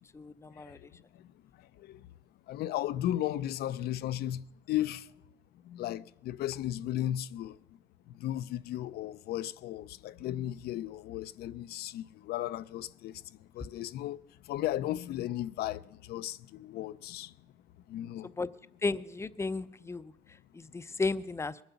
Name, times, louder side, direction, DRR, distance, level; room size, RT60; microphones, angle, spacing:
voice 1, 0.1-0.8 18.2-18.5 18.8-20.1 20.5-21.6, left 3 dB, 15° left, 0.5 m, -34 dB
voice 2, 2.5-5.1 5.7-7.6 8.2-13.1 13.5-14.2 14.5-17.3 17.9-18.3, left 13 dB, 70° left, 0.5 m, -35 dB
20.5 x 9.3 x 7.0 m
cardioid pair, 110°, 17 cm